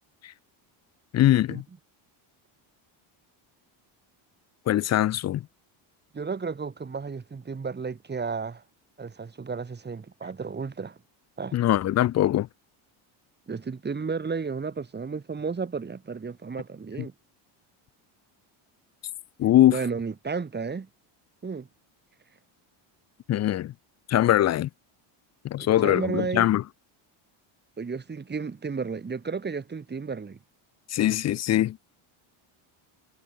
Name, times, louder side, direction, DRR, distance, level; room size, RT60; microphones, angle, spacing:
voice 1, 1.1-1.6 4.7-5.4 11.5-12.5 19.4-19.8 23.3-23.7 24.1-24.7 25.4-26.6 30.9-31.8, left 13 dB, 35° left, 0.5 m, -22 dB
voice 2, 6.1-8.6 9.0-11.0 11.4-11.6 13.5-17.1 19.7-20.9 21.4-21.7 25.6-26.5 27.8-30.4, right 5 dB, 20° right, 4.9 m, -33 dB
cardioid pair, 140°, 49 cm